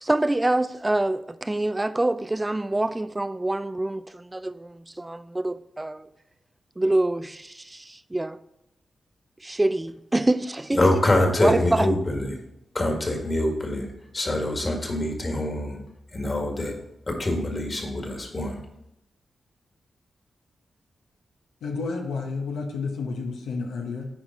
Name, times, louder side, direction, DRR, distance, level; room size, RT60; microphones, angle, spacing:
voice 1, 0.0-6.1 6.8-8.4 9.4-10.9 11.4-11.9, right 2 dB, 20° right, 13 dB, 0.3 m, -26 dB
voice 2, 10.7-12.3 12.7-13.9 14.1-15.8 16.1-16.8 17.1-18.6, left 1 dB, 40° left, 2 dB, 1.8 m, -24 dB
voice 3, 21.6-24.1, left 4 dB, 85° left, 2 dB, 0.8 m, -30 dB
8.7 x 4.6 x 3.9 m, 0.84 s
supercardioid pair, 45°, 0 cm